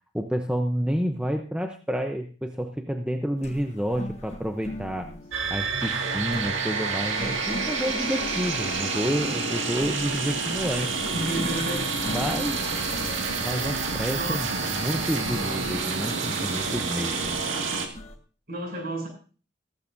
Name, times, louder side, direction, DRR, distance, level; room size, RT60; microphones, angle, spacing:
voice 1, 0.1-5.1 5.5-10.9 12.1-12.7 13.4-17.4, equal, 5° right, 4 dB, 0.7 m, -29 dB
sound 1, 3.4-18.2, left 1 dB, 35° left, 1.5 m, -42 dB
sound 2, 5.3-17.9, right 4 dB, 85° right, 2.1 m, -28 dB
voice 2, 11.1-11.9 14.1-14.8 18.5-19.1, right 1 dB, 50° right, 0 dB, 7.7 m, -31 dB
15.5 x 14.5 x 2.7 m, 0.37 s
head